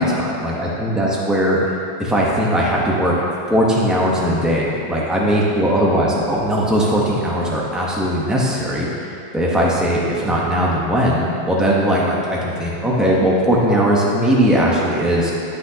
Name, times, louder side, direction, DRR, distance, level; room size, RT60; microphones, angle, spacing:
voice 1, 0.0-1.6 2.0-3.2 3.5-8.9 9.3-15.4, equal, ahead, -4 dB, 0.5 m, -19 dB
12.0 x 6.1 x 2.8 m, 2.7 s
omnidirectional pair, 1.9 m